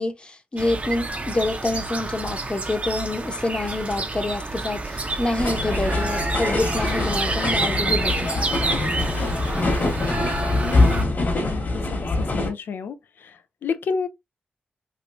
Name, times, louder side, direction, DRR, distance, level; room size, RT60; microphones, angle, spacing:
voice 1, 0.0-8.3, left 2 dB, 30° left, 0.8 m, -27 dB
sound 1, 0.6-11.0, right 3 dB, 40° right, 0.8 m, -28 dB
sound 2, 5.4-12.5, left 2 dB, 55° left, 1.3 m, -24 dB
voice 2, 10.6-13.3 13.6-14.1, left 5 dB, 90° left, 0.4 m, -31 dB
3.1 x 3.0 x 2.6 m
cardioid pair, 60°, 3 cm